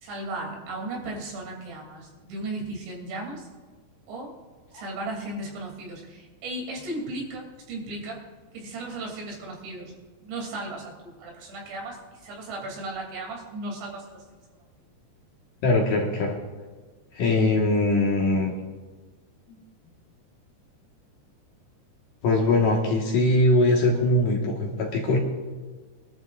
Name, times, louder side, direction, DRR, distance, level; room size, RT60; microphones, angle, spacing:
voice 1, 0.0-3.5 4.1-4.3 4.7-8.2 8.5-9.9 10.2-14.4, right 2 dB, 80° right, -1 dB, 5.2 m, -36 dB
voice 2, 15.6-16.4 17.2-18.5 22.2-25.2, left 2 dB, 60° left, -1 dB, 2.7 m, -21 dB
25.0 x 12.5 x 2.5 m, 1.4 s
omnidirectional pair, 5.1 m